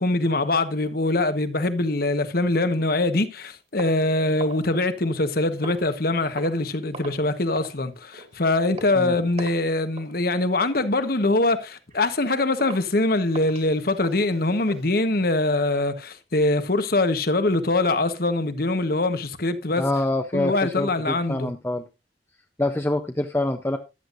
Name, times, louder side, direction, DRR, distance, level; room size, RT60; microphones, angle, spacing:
voice 1, 0.0-19.8 20.3-21.5, left 2 dB, 55° left, 1.3 m, -23 dB
sound 1, 3.8-5.3 5.6-6.0 6.3-6.7 6.9-7.3 7.5-7.8 8.1-8.4 8.8-9.0 9.4-9.7 10.0-10.2 10.6-10.8 11.3-11.4 11.9-12.0 12.6-12.9 13.3-14.8, right 2 dB, 40° right, 2.2 m, -40 dB
voice 2, 19.8-21.8 22.6-23.8, left 1 dB, 15° left, 0.7 m, -26 dB
14.0 x 10.0 x 2.6 m
head